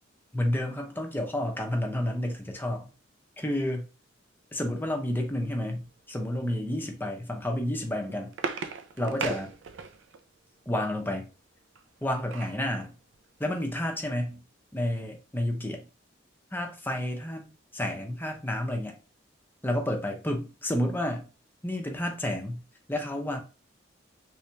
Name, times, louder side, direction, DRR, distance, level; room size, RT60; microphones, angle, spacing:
voice 1, 0.3-2.9 3.4-3.9 4.5-8.3 9.0-9.5 10.7-11.3 12.0-12.9 13.4-14.4 14.7-15.9 16.5-17.5 17.7-19.0 19.6-21.3 21.6-22.6 22.9-23.4, left 1 dB, 10° left, 0.6 m, -30 dB
sound 1, 7.7-10.2 11.8-12.6 13.1-13.2 13.5-13.7, right 5 dB, 85° right, 0.5 m, -36 dB
3.4 x 3.2 x 2.8 m
head